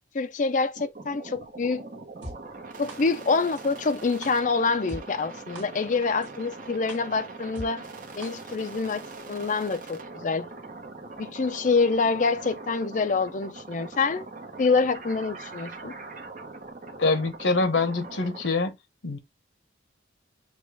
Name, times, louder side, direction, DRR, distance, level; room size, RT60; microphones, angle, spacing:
voice 1, 0.1-1.8 2.8-7.9 8.2-9.0 9.3-10.5 11.2-14.3 14.6-15.9, left 4 dB, 40° left, 0.4 m, -26 dB
sound 1, 0.8-18.5, right 3 dB, 45° right, 0.9 m, -42 dB
sound 2, 2.2-2.3 2.9-3.0 3.6-3.7 4.2-4.3 4.9-5.0 5.6-5.7 6.2-6.3 6.9-7.0 7.6-7.7 8.2-8.3 8.9-9.0, right 1 dB, 75° right, 2.0 m, -39 dB
voice 2, 17.0-18.8 19.0-19.2, left 3 dB, 85° left, 1.0 m, -25 dB
6.4 x 2.4 x 3.4 m
head